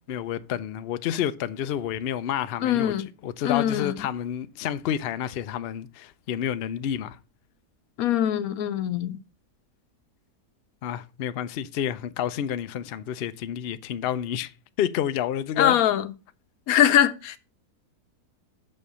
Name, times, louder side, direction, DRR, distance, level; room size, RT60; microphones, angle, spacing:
voice 1, 0.1-3.0 3.2-7.2 10.8-14.5 14.8-15.8, left 10 dB, 90° left, 0.5 m, -29 dB
voice 2, 2.6-3.1 3.4-4.1 8.0-9.2 15.6-16.1 16.7-17.4, left 10 dB, 70° left, 1.1 m, -22 dB
6.4 x 5.5 x 6.8 m
omnidirectional pair, 1.7 m